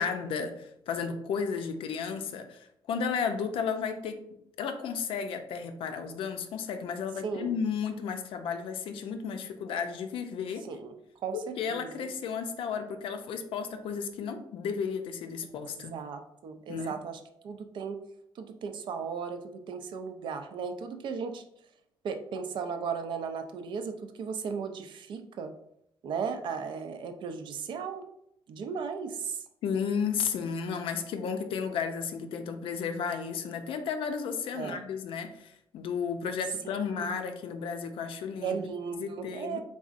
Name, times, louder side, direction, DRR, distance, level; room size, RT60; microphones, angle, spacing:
voice 1, 0.0-4.2 4.6-10.6 11.3-15.9 16.7-17.0 29.6-38.6 39.0-39.6, left 6 dB, 85° left, 7 dB, 0.5 m, -33 dB
voice 2, 7.2-7.6 10.7-10.9 11.2-12.1 15.8-18.0 18.4-21.4 22.0-25.5 26.0-28.0 28.5-29.4 34.5-34.8 37.0-37.2 38.4-39.6, right 6 dB, 65° right, 7 dB, 0.5 m, -36 dB
4.0 x 3.6 x 2.5 m, 0.77 s
cardioid pair, 165°, 9 cm